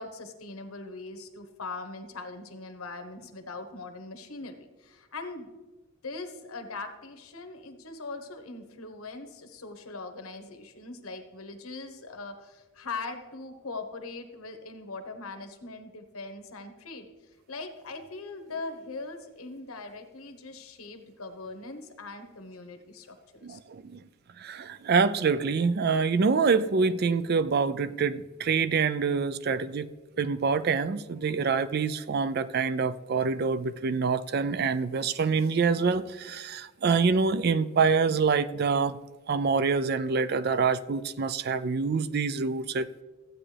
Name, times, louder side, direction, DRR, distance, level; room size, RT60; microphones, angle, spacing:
voice 1, 0.0-5.5 6.0-17.1 17.5-23.6, left 3 dB, 85° left, 7 dB, 1.2 m, -41 dB
voice 2, 23.4-24.0 24.4-29.9 30.2-39.0 39.3-42.9, right 5 dB, 45° right, 14 dB, 0.4 m, -26 dB
14.5 x 8.6 x 3.4 m, 1.2 s
head